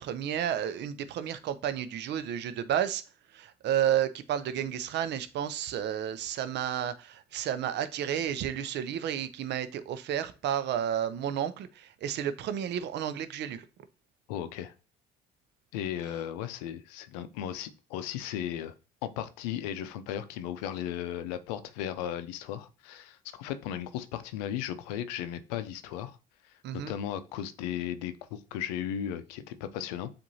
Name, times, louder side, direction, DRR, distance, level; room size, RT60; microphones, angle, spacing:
voice 1, 0.0-3.0 3.3-13.6 26.6-26.9, right 10 dB, 60° right, 0.6 m, -31 dB
voice 2, 14.3-14.7 15.7-18.7 19.0-26.2 26.5-30.1, left 10 dB, 85° left, 0.5 m, -36 dB
7.4 x 2.6 x 2.7 m
hypercardioid pair, 65°, 20 cm